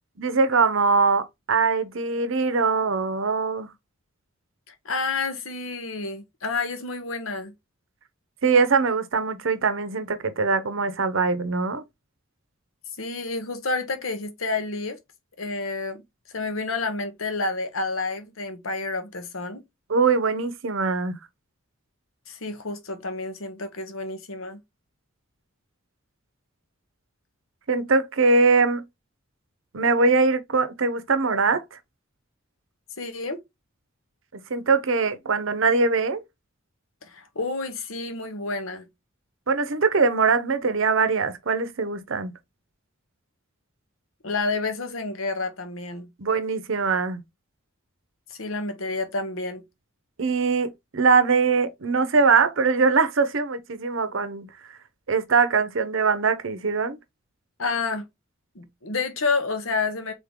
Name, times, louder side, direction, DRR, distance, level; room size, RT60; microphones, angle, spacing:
voice 1, 0.2-3.7 8.4-11.8 19.9-21.2 27.7-28.8 29.7-31.8 34.5-36.2 39.5-42.3 46.2-47.2 50.2-54.5 55.1-57.0, right 4 dB, 65° right, 0.7 m, -22 dB
voice 2, 4.7-7.5 13.0-15.0 15.4-16.0 16.3-19.6 22.3-24.6 33.0-33.4 37.0-38.9 44.2-46.1 48.3-49.6 57.6-58.1 58.5-60.1, left 3 dB, 70° left, 1.0 m, -29 dB
3.8 x 3.6 x 3.6 m
head